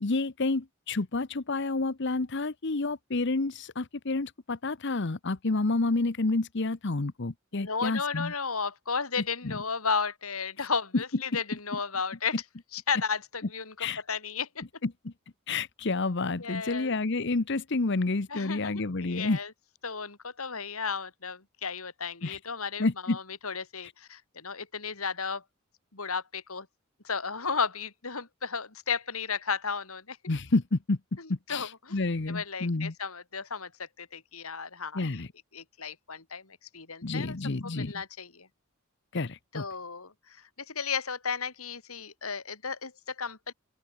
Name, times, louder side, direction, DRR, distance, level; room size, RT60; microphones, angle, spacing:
voice 1, 0.0-8.3 9.4-9.5 10.6-10.7 11.3-11.4 13.8-14.0 14.8-15.1 15.5-19.4 22.2-22.4 22.8-23.2 30.3-31.0 31.5-32.9 34.9-35.3 37.0-37.9 39.1-39.6, left 3 dB, 55° left, 0.9 m, -29 dB
voice 2, 7.5-12.4 12.7-14.6 16.3-16.9 18.3-19.5 19.8-25.4 25.9-26.7 27.0-30.2 31.2-32.0 32.3-35.2 35.5-37.4 37.6-38.5 39.5-43.5, left 5 dB, 90° left, 3.4 m, -34 dB
open air
head